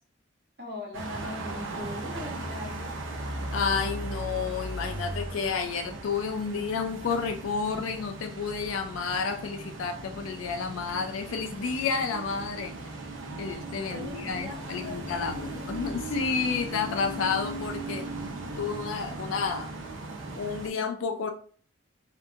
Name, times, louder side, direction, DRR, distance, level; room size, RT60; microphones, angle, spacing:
voice 1, 0.6-3.0 13.2-13.4 13.9-15.4, left 1 dB, 55° right, -2 dB, 1.0 m, -40 dB
sound 1, 0.9-20.7, right 2 dB, 75° right, 0.7 m, -38 dB
voice 2, 3.5-12.7 13.4-18.1 18.6-19.7 20.3-21.3, left 5 dB, 85° left, 5 dB, 0.4 m, -30 dB
2.7 x 2.5 x 2.4 m, 0.44 s
head